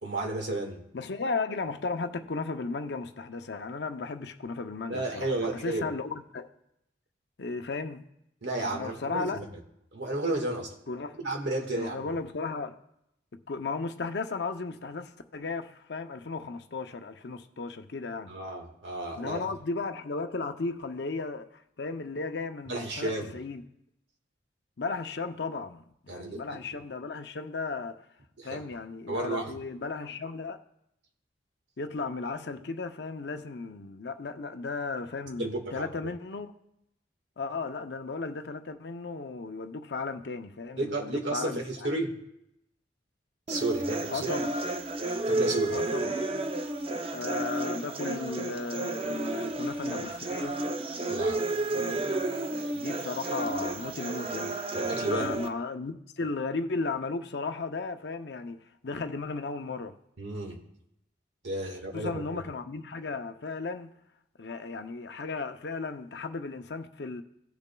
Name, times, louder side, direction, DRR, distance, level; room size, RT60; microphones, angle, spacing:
voice 1, 0.0-0.8 4.9-5.9 8.4-9.4 9.9-10.7 11.1-12.1 18.3-19.5 22.7-23.3 26.1-26.4 26.7-26.8 28.4-28.6 29.1-29.6 35.4-36.1 40.8-42.2 43.5-44.3 45.3-45.8 51.1-51.4 54.7-55.3 60.2-60.6 61.4-62.4, right 2 dB, 75° right, 1.6 m, -32 dB
voice 2, 0.9-5.3 5.6-6.5 7.4-8.0 8.6-9.4 10.9-11.2 11.8-12.8 13.5-18.3 19.2-23.6 24.8-28.0 28.4-30.6 31.8-36.5 37.4-41.6 44.1-44.5 45.7-46.2 47.1-50.6 51.8-52.0 52.7-54.6 55.1-60.0 61.9-63.9 64.4-67.2, left 4 dB, 65° left, 0.6 m, -35 dB
sound 1, 43.5-55.5, right 2 dB, 30° right, 0.6 m, -31 dB
17.0 x 6.9 x 2.3 m
head